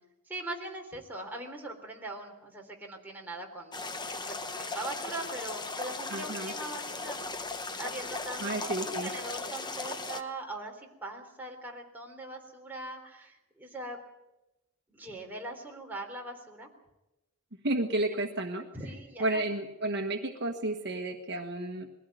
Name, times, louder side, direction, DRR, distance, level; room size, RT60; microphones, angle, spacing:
voice 1, 0.3-3.8 4.2-7.2 7.8-14.0 14.9-16.7 18.7-19.4, right 2 dB, 10° right, 0 dB, 3.6 m, -41 dB
sound 1, 3.7-10.2, left 3 dB, 20° left, 1.1 m, -37 dB
voice 2, 6.1-6.5 8.4-9.1 17.6-18.7 19.2-21.9, right 2 dB, 55° right, 4 dB, 1.4 m, -32 dB
21.5 x 16.0 x 9.3 m, 0.97 s
head